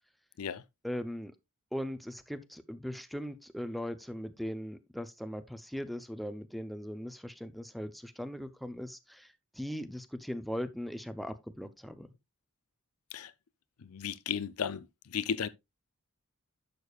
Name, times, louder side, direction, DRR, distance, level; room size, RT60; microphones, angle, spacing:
voice 1, 0.8-1.3 1.7-12.1, equal, ahead, 0.7 m, -39 dB
voice 2, 13.8-15.5, left 7 dB, 70° left, 0.5 m, -35 dB
11.0 x 6.9 x 2.4 m
head